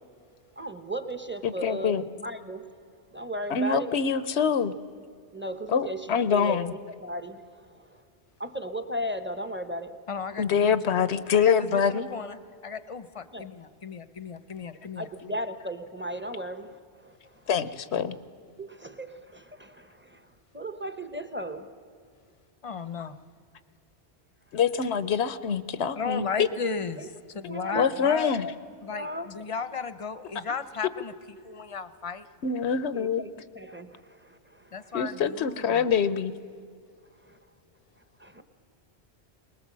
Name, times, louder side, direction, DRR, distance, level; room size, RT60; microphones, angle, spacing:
voice 1, 0.6-2.7 3.1-4.0 5.3-6.6 7.0-8.0 8.4-10.0 13.3-13.5 15.0-17.5 18.6-21.7 26.4-26.5 27.0-27.1 27.5-27.9 28.4-28.5 28.9-29.3 32.9-33.3 33.5-35.0 37.2-37.4 38.2-38.4, right 1 dB, 10° right, 9 dB, 0.9 m, -36 dB
voice 2, 1.4-2.0 3.5-4.7 5.7-6.7 10.4-12.1 17.5-18.2 24.5-26.5 27.8-28.5 32.4-33.2 34.9-36.3, left 7 dB, 80° left, 14 dB, 1.1 m, -25 dB
voice 3, 10.1-11.0 11.3-15.3 22.6-23.2 25.9-27.1 27.3-28.3 28.8-31.1 31.4-32.3 34.7-35.9, left 5 dB, 35° left, 13 dB, 0.7 m, -35 dB
23.0 x 20.0 x 7.5 m, 2.3 s
omnidirectional pair, 1.1 m